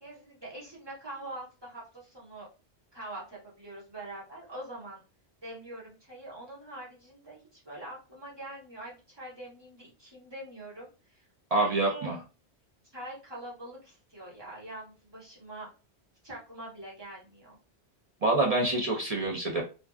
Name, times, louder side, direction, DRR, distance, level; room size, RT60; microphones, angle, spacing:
voice 1, 0.0-2.5 2.9-5.0 5.4-11.3 11.5-12.1 12.9-15.7 16.2-17.6, right 1 dB, 25° right, -5 dB, 1.0 m, -44 dB
voice 2, 11.5-12.2 18.2-19.6, right 2 dB, 55° right, -1 dB, 0.4 m, -26 dB
2.5 x 2.2 x 2.3 m, 0.32 s
omnidirectional pair, 1.2 m